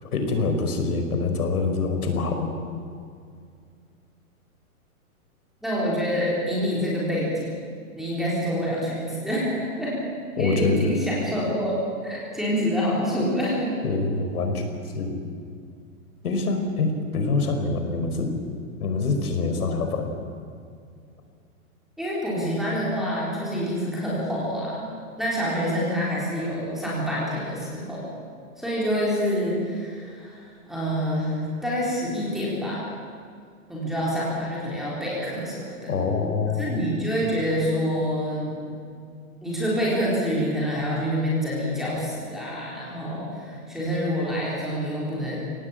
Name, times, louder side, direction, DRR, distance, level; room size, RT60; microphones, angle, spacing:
voice 1, 0.0-2.6 10.4-10.9 13.8-14.6 14.9-15.2 16.2-18.3 18.8-20.1 35.9-36.8, left 3 dB, 85° left, 5 dB, 4.9 m, -25 dB
voice 2, 5.6-7.6 7.9-10.0 10.4-11.7 12.0-13.7 22.0-24.9 25.2-28.0 28.6-32.8 33.7-36.0 36.6-38.6 39.4-45.4, equal, ahead, -6 dB, 3.9 m, -27 dB
23.5 x 18.0 x 8.8 m, 2.3 s
hypercardioid pair, 180°, 44 cm